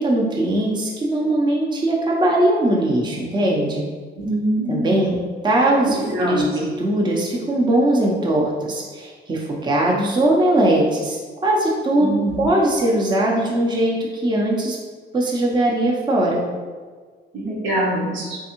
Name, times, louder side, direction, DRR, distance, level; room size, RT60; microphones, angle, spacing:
voice 1, 0.0-3.8 4.7-12.1 12.4-14.8 15.1-16.4, right 1 dB, 20° right, -2 dB, 0.6 m, -20 dB
voice 2, 4.1-5.1 5.8-6.5 12.0-12.5 17.3-18.4, right 1 dB, 70° right, -4 dB, 1.2 m, -24 dB
3.5 x 3.1 x 2.9 m, 1.5 s
cardioid pair, 90°, 20 cm